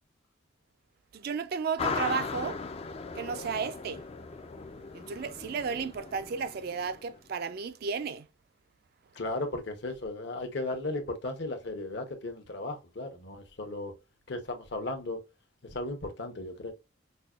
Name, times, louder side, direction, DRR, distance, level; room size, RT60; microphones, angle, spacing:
voice 1, 1.1-2.6 3.1-4.0 4.9-8.3, right 5 dB, 50° right, 0.3 m, -33 dB
sound 1, 1.8-7.1, left 4 dB, 30° left, 0.3 m, -38 dB
voice 2, 9.2-13.9 14.3-15.2 15.7-16.7, left 2 dB, 60° left, 0.9 m, -35 dB
5.3 x 2.2 x 2.3 m
head